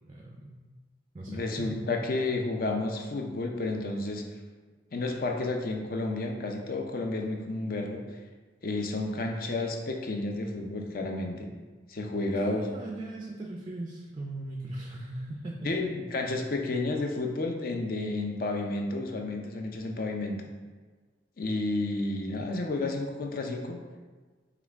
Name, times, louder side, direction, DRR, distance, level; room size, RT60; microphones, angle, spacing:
voice 1, 0.1-0.6 1.1-1.9 12.3-15.7, right 1 dB, 25° right, -1 dB, 0.3 m, -39 dB
voice 2, 1.3-4.2 4.9-8.0 8.6-11.5 11.9-12.7 15.6-20.4 21.4-23.8, left 2 dB, 50° left, 2 dB, 0.5 m, -31 dB
5.8 x 2.3 x 3.4 m, 1.4 s
head